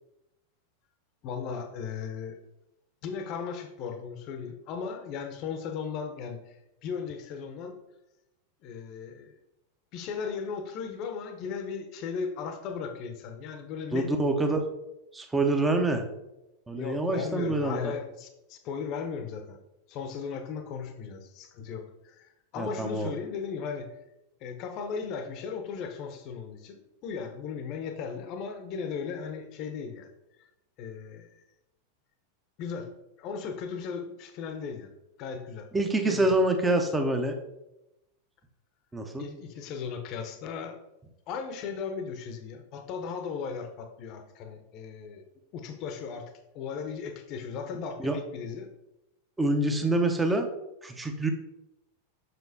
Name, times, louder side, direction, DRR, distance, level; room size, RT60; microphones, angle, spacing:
voice 1, 1.2-2.4 3.0-7.8 8.6-9.4 9.9-14.1 16.8-19.6 19.9-23.9 24.4-30.1 30.8-31.4 32.6-32.9 33.2-34.9 35.2-35.7 36.0-36.3 39.2-40.8 41.3-45.2 45.5-48.7, left 6 dB, 40° left, 6 dB, 0.8 m, -37 dB
voice 2, 13.9-14.7 15.1-16.1 16.7-17.8 22.6-23.1 35.7-37.4 38.9-39.2 48.0-48.2 49.4-50.5 50.8-51.3, right 2 dB, 10° right, 5 dB, 0.8 m, -26 dB
6.9 x 6.0 x 2.7 m, 0.91 s
figure-of-eight pair, 90°, 0 cm